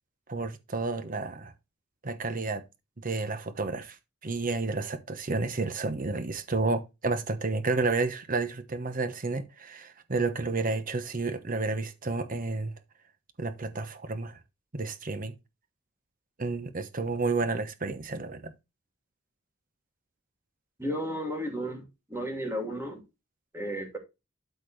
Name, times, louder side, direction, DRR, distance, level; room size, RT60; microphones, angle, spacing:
voice 1, 0.3-1.5 2.0-2.6 3.0-4.0 4.2-12.7 13.4-14.4 14.7-15.3 16.4-18.5, right 3 dB, 40° right, 1.0 m, -31 dB
voice 2, 20.8-21.8 22.1-23.0 23.5-24.0, equal, 15° right, 2.7 m, -33 dB
12.5 x 4.2 x 3.3 m
head